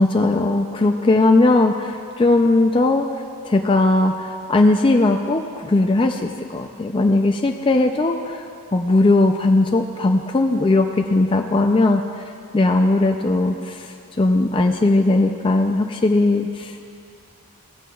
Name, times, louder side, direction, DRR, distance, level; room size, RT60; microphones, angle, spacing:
voice 1, 0.0-16.8, left 2 dB, 25° left, 3 dB, 0.4 m, -18 dB
17.5 x 14.5 x 2.3 m, 2.4 s
head